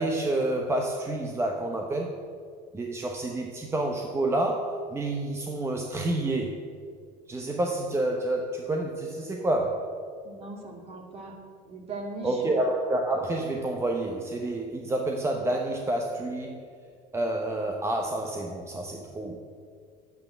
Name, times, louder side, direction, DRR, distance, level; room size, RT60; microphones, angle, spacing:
voice 1, 0.0-2.1 2.7-6.6 7.3-9.9 12.2-16.7 17.1-19.4, right 2 dB, 15° right, 2 dB, 0.9 m, -29 dB
voice 2, 10.2-11.3 11.7-12.6, right 2 dB, 35° right, 2 dB, 2.4 m, -39 dB
9.7 x 8.2 x 7.9 m, 2.2 s
supercardioid pair, 125°, 17 cm